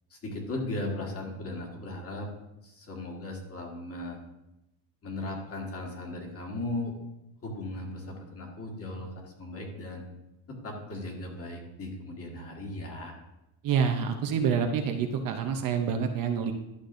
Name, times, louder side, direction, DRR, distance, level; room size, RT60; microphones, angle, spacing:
voice 1, 0.1-2.3 2.6-4.2 5.0-6.9 7.4-10.0 10.5-13.2, left 2 dB, 30° left, 0 dB, 1.6 m, -37 dB
voice 2, 13.6-16.5, right 7 dB, 45° right, 4 dB, 0.7 m, -27 dB
12.0 x 6.6 x 2.5 m, 0.93 s
cardioid pair, 150°, 49 cm